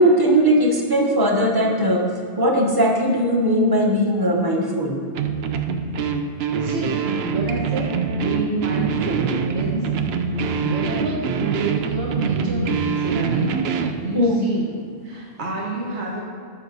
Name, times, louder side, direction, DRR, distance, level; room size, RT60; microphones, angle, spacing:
voice 1, 0.0-2.0 2.4-5.0 14.1-14.5, equal, 20° right, 0 dB, 1.0 m, -18 dB
sound 1, 5.1-14.0, right 6 dB, 70° right, 0.8 m, -24 dB
voice 2, 6.6-9.9 10.1-10.3 10.6-13.6 14.0-16.2, right 2 dB, 90° right, -3 dB, 1.5 m, -28 dB
7.3 x 5.1 x 6.7 m, 2.3 s
omnidirectional pair, 1.1 m